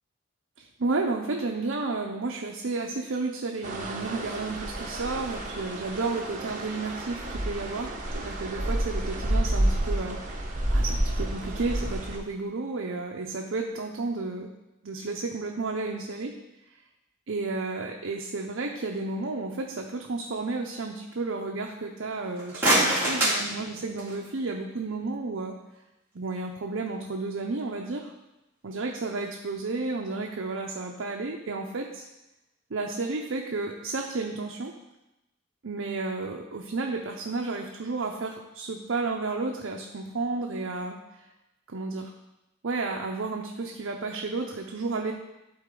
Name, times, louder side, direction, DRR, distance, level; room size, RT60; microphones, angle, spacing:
voice 1, 0.6-14.5 14.8-16.3 17.3-25.6 26.1-28.1 28.6-32.1 32.7-34.7 35.6-41.3 41.7-42.1 42.6-45.1, right 3 dB, 65° right, 1 dB, 0.6 m, -32 dB
sound 1, 3.6-12.2, right 1 dB, 40° right, 1.1 m, -30 dB
sound 2, 22.2-24.3, right 1 dB, 10° right, 2.3 m, -25 dB
12.0 x 4.2 x 3.8 m, 0.95 s
head